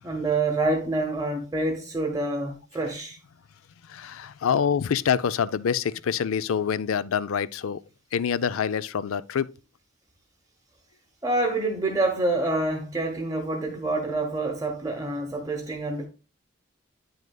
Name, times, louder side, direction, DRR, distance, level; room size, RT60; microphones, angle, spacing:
voice 1, 0.0-3.2 11.2-16.1, right 2 dB, 15° right, 0.8 m, -27 dB
voice 2, 3.9-7.8 8.1-9.5, left 7 dB, 80° left, 0.4 m, -26 dB
8.8 x 6.4 x 2.2 m
head